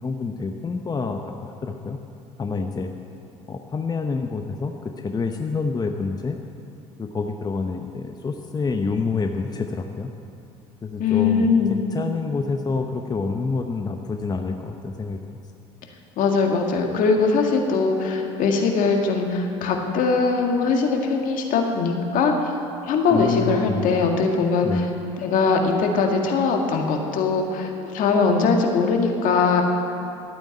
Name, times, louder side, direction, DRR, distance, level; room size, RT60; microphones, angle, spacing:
voice 1, 0.0-2.0 2.4-2.9 3.5-6.4 7.0-10.1 10.8-15.2 23.1-23.9 24.6-24.8, left 4 dB, 25° left, 5 dB, 0.8 m, -27 dB
voice 2, 11.0-11.8 16.2-22.5 22.9-24.9 25.2-29.6, left 4 dB, 55° left, 2 dB, 1.9 m, -21 dB
13.0 x 8.9 x 8.7 m, 2.7 s
hypercardioid pair, 65°, 16 cm